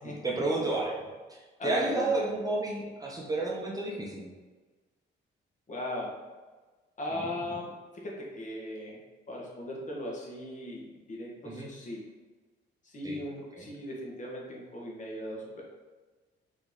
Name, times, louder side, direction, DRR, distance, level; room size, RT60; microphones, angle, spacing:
voice 1, 0.0-4.3 7.1-7.3 11.4-11.7 13.0-13.2 13.5-13.7, right 2 dB, 20° right, -3 dB, 0.7 m, -31 dB
voice 2, 1.6-2.1 5.7-6.2 7.0-7.7 8.0-9.0 9.3-12.0 12.8-15.6, left 1 dB, 40° left, -3 dB, 1.2 m, -38 dB
3.8 x 3.1 x 3.6 m, 1.3 s
cardioid pair, 90°, 20 cm